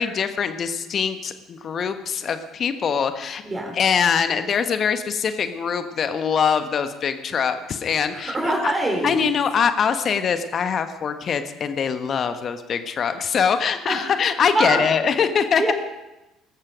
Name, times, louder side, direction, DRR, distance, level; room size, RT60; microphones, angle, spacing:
voice 1, 0.0-3.4 3.7-8.7 9.0-15.7, left 6 dB, 45° left, 9 dB, 1.4 m, -23 dB
voice 2, 3.4-3.7 8.1-9.2 13.9-14.2 14.5-14.8 15.6-15.7, right 1 dB, 25° right, 1 dB, 4.4 m, -24 dB
18.5 x 14.0 x 5.2 m, 0.98 s
figure-of-eight pair, 55°, 0 cm